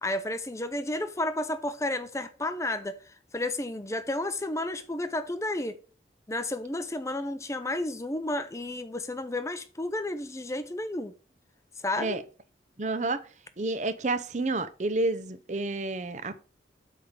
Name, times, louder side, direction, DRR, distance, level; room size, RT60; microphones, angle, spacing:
voice 1, 0.0-5.8 6.3-11.1 11.8-12.2, left 1 dB, 15° left, 0.6 m, -32 dB
voice 2, 12.8-13.2 13.6-16.4, right 2 dB, 40° right, 0.7 m, -30 dB
8.4 x 3.6 x 6.5 m
head